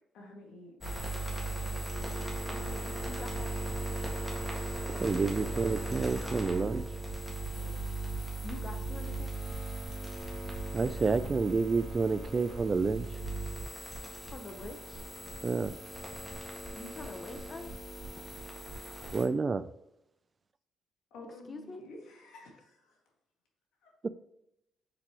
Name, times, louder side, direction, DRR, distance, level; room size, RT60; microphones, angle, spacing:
voice 1, 0.1-1.3 7.5-7.7 19.2-19.4 21.1-23.0 23.8-23.9, left 2 dB, 85° left, 2.0 m, -51 dB
sound 1, 0.8-19.2, right 2 dB, 10° left, 1.6 m, -38 dB
voice 2, 2.4-3.5 8.4-9.5 14.3-15.1 16.7-17.8 21.4-21.9, left 3 dB, 35° left, 0.8 m, -45 dB
voice 3, 5.0-6.8 10.7-13.1 15.4-15.7 19.1-19.6 24.0-24.1, right 4 dB, 35° right, 0.3 m, -29 dB
6.8 x 4.8 x 3.0 m
cardioid pair, 90°, 0 cm